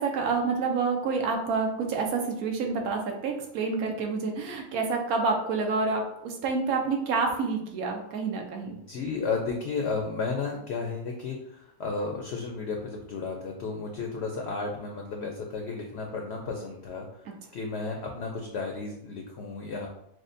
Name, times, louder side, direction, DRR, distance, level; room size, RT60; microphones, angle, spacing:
voice 1, 0.0-8.8, right 4 dB, 75° right, 2 dB, 1.2 m, -28 dB
voice 2, 8.7-19.9, left 4 dB, 65° left, 1 dB, 0.7 m, -33 dB
6.2 x 2.2 x 2.6 m, 0.76 s
omnidirectional pair, 1.6 m